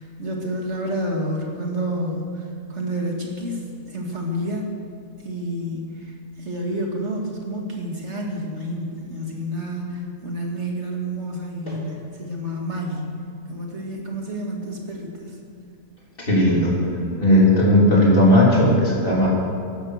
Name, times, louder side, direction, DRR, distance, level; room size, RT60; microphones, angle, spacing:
voice 1, 0.0-4.7 5.2-13.2 13.5-15.4, equal, 45° right, 0 dB, 2.5 m, -29 dB
voice 2, 16.2-16.8 17.1-19.3, left 1 dB, 35° left, -4 dB, 3.7 m, -16 dB
15.5 x 11.5 x 6.6 m, 2.6 s
omnidirectional pair, 1.6 m